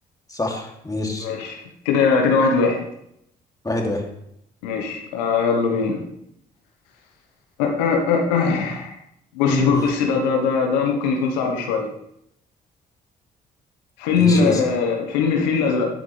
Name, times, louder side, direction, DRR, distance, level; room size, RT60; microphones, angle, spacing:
voice 1, 0.3-1.3 3.6-4.0 9.5-9.8 14.2-14.6, left 2 dB, 15° left, 0 dB, 3.0 m, -24 dB
voice 2, 1.2-1.6 1.8-2.8 4.6-6.0 7.6-8.9 9.3-11.9 14.0-15.9, left 5 dB, 85° left, 2 dB, 1.3 m, -20 dB
13.0 x 7.8 x 3.4 m, 0.76 s
hypercardioid pair, 50°, 21 cm